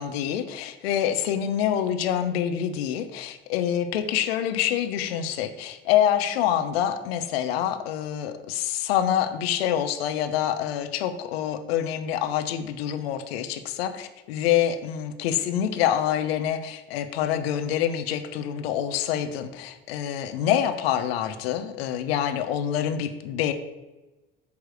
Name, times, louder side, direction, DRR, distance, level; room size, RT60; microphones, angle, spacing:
voice 1, 0.0-23.5, left 10 dB, 80° left, 9 dB, 0.8 m, -26 dB
8.4 x 3.1 x 6.3 m, 1.1 s
hypercardioid pair, 70°, 30 cm